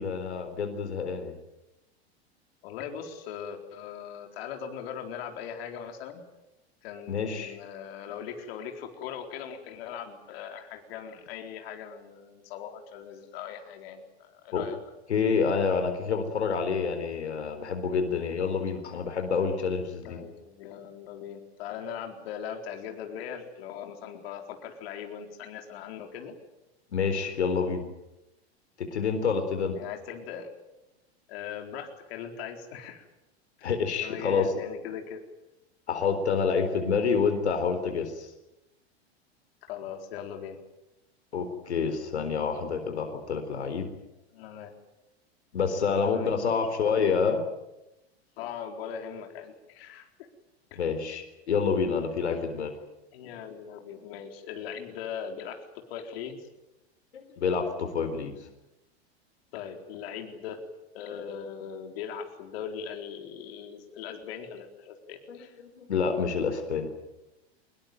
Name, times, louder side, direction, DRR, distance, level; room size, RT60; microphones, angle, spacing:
voice 1, 0.0-1.3 7.1-7.6 14.5-14.6 15.1-20.2 26.9-27.9 28.8-29.8 33.6-34.5 35.9-38.3 41.3-43.9 45.5-47.4 50.8-52.7 57.1-58.3 65.3-65.4 65.8-66.9, left 5 dB, 80° left, 7 dB, 4.1 m, -28 dB
voice 2, 2.6-6.2 6.8-14.8 20.0-26.4 29.4-30.5 31.3-33.0 34.0-35.3 39.6-40.6 44.3-44.7 46.0-46.4 48.4-50.1 50.7-50.8 53.1-56.5 59.5-60.6 60.9-65.6, left 8 dB, 65° left, 4 dB, 4.3 m, -40 dB
24.5 x 22.5 x 9.3 m, 0.93 s
hypercardioid pair, 95°, 33 cm